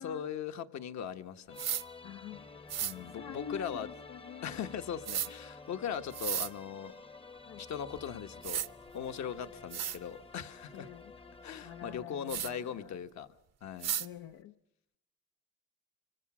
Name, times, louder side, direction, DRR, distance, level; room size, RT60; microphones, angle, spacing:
voice 1, 0.0-1.6 2.8-3.9 4.4-7.0 7.6-8.6 8.9-10.9 11.4-13.3 13.6-13.9, left 8 dB, 65° left, 8 dB, 1.3 m, -39 dB
sound 1, 1.5-12.0, left 4 dB, 20° left, 0.8 m, -51 dB
sound 2, 1.6-1.8 2.7-2.9 5.0-5.3 6.1-6.5 8.0-8.1 8.4-8.7 9.3-9.4 9.7-10.0 12.3-12.5 13.8-14.1, right 10 dB, 60° right, 0.8 m, -34 dB
voice 2, 2.0-2.5 3.1-4.7 7.4-7.7 10.7-11.1 11.6-13.0 14.0-14.5, left 9 dB, 85° left, 5 dB, 0.8 m, -47 dB
26.0 x 24.5 x 6.1 m, 0.80 s
cardioid pair, 90°, 30 cm